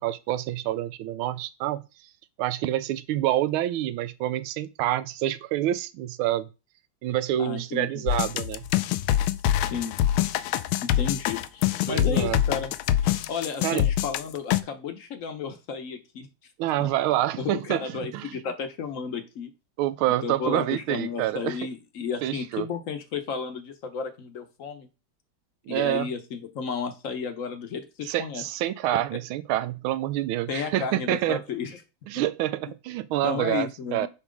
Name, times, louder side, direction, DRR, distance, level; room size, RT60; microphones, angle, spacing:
voice 1, 0.0-1.8 2.4-6.5 7.0-8.7 11.9-12.4 13.6-13.9 16.6-18.4 19.8-21.6 22.2-22.7 25.7-26.1 28.0-31.4 32.1-34.1, right 13 dB, 85° right, 1.4 m, -27 dB
voice 2, 7.4-8.1 9.7-10.0 10.8-12.7 13.0-16.3 16.8-16.9 17.4-19.5 20.2-24.9 25.7-28.4 30.5-31.8 33.2-34.1, left 6 dB, 55° left, 1.0 m, -33 dB
sound 1, 8.1-14.6, left 12 dB, 80° left, 1.4 m, -25 dB
8.4 x 3.1 x 5.1 m
omnidirectional pair, 2.2 m